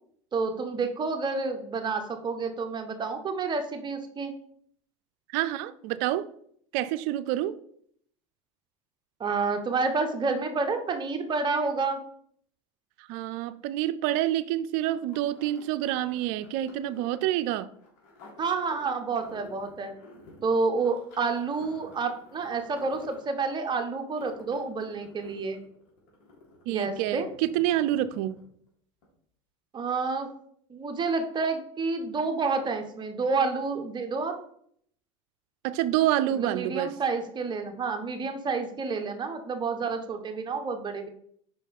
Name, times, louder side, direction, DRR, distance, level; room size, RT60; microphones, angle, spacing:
voice 1, 0.3-4.3 9.2-12.0 18.4-19.9 20.4-25.6 26.7-27.3 29.7-30.3 30.7-34.4 36.3-41.1, right 4 dB, 30° right, 1.1 m, -29 dB
voice 2, 5.3-6.2 6.7-7.5 13.0-17.7 26.7-28.3 35.6-36.9, right 13 dB, 65° right, 0.5 m, -27 dB
sound 1, 14.9-28.7 29.0-29.1, left 2 dB, 65° left, 2.9 m, -52 dB
5.6 x 4.2 x 5.3 m
hypercardioid pair, 95°, 16 cm